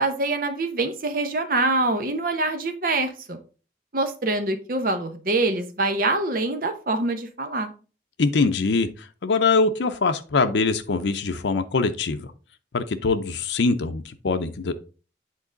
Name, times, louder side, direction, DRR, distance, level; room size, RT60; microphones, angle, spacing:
voice 1, 0.0-3.4 3.9-7.7, right 2 dB, 50° right, 7 dB, 0.9 m, -25 dB
voice 2, 8.2-12.3 12.7-14.7, left 4 dB, 85° left, 9 dB, 0.6 m, -23 dB
7.5 x 3.8 x 3.8 m, 0.36 s
head